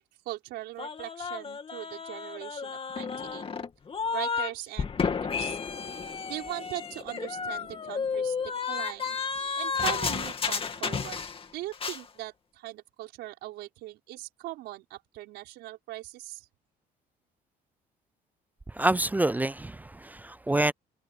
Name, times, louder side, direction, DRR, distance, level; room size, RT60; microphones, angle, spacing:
voice 1, 0.0-3.5 4.1-5.6 6.3-8.4 8.7-9.2 9.6-11.2 11.5-16.5, right 16 dB, 85° right, 5.2 m, -40 dB
sound 1, 0.8-4.5 4.8-11.5 11.7-12.0, left 5 dB, 35° left, 2.6 m, -32 dB
voice 2, 18.7-20.7, right 1 dB, 10° right, 0.4 m, -27 dB
cardioid pair, 110°, 17 cm